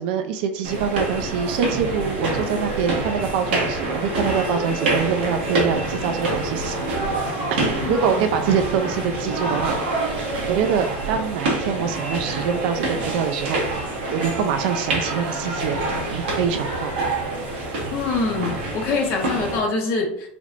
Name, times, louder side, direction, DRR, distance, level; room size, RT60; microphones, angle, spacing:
voice 1, 0.0-7.0 7.5-9.8 10.5-13.6 14.1-15.8 16.1-17.0, right 7 dB, 70° right, 6 dB, 0.5 m, -24 dB
sound 1, 0.6-19.6, right 2 dB, 90° right, 1.1 m, -26 dB
voice 2, 7.8-8.3 17.9-20.3, left 3 dB, 45° left, 1 dB, 0.7 m, -25 dB
3.3 x 3.1 x 2.5 m, 0.64 s
supercardioid pair, 115°, 6 cm